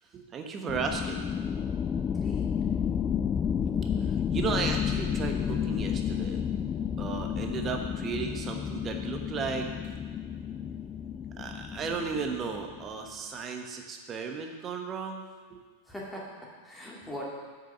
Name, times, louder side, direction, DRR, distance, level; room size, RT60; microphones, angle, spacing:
voice 1, 0.1-1.3 4.0-6.4 7.0-9.7 11.4-15.6, right 5 dB, 25° right, 4 dB, 1.2 m, -35 dB
sound 1, 0.7-12.9, left 8 dB, 20° left, 0.3 m, -31 dB
voice 2, 2.0-2.6 15.9-17.3, equal, 5° left, -4 dB, 2.2 m, -41 dB
7.9 x 6.3 x 6.8 m, 1.5 s
figure-of-eight pair, 90°, 0 cm